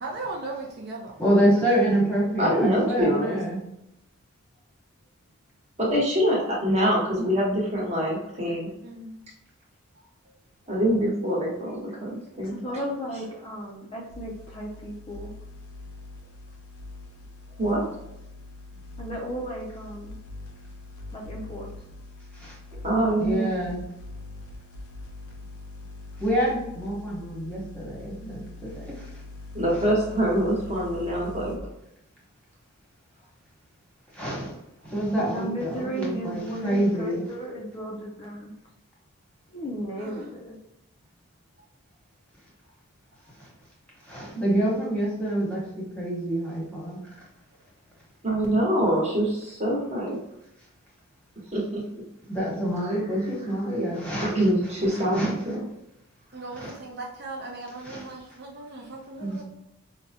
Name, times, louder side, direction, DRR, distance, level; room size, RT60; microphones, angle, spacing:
voice 1, 0.0-1.5 1.7-1.8 8.8-9.2 40.0-40.3 56.3-59.4, right 2 dB, 45° right, -1 dB, 0.4 m, -38 dB
voice 2, 1.2-3.7 22.3-22.5 23.2-23.8 26.2-29.2 34.1-34.6 34.8-37.2 43.4-43.5 44.0-47.1 52.3-54.3 54.6-55.4 56.6-56.7 57.8-58.0 59.2-59.4, right 1 dB, 5° left, -6 dB, 1.0 m, -27 dB
voice 3, 2.4-3.4 5.8-8.7 10.7-12.6 17.6-17.8 22.8-23.5 29.5-31.6 48.2-50.2 51.5-51.8 54.2-55.6, right 1 dB, 30° right, -3 dB, 1.0 m, -24 dB
voice 4, 12.4-15.3 19.0-20.2 21.1-21.7 35.2-38.5 39.5-40.6, right 1 dB, 25° left, -2 dB, 0.4 m, -35 dB
sound 1, 14.1-31.6, left 2 dB, 80° left, 0.6 m, -43 dB
4.7 x 2.1 x 2.7 m, 0.87 s
head